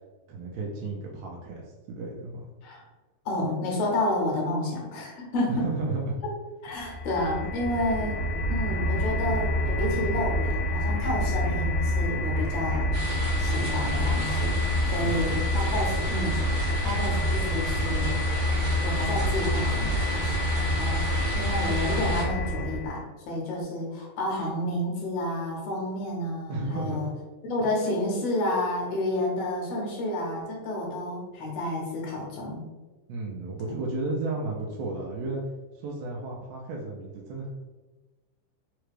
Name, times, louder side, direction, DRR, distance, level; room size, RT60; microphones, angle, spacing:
voice 1, 0.3-2.5 5.5-6.2 15.0-15.3 26.5-27.1 33.1-35.4 35.7-37.5, right 3 dB, 80° right, -2 dB, 1.5 m, -33 dB
voice 2, 3.3-5.7 6.6-12.9 13.4-18.2 18.8-20.4 20.7-27.1 27.4-32.7, left 1 dB, 70° left, -2 dB, 1.8 m, -30 dB
sound 1, 6.8-23.0, left 1 dB, 85° left, 1.4 m, -27 dB
sound 2, 12.9-22.2, right 2 dB, 65° right, 1.6 m, -35 dB
4.8 x 2.2 x 3.2 m, 1.2 s
omnidirectional pair, 3.5 m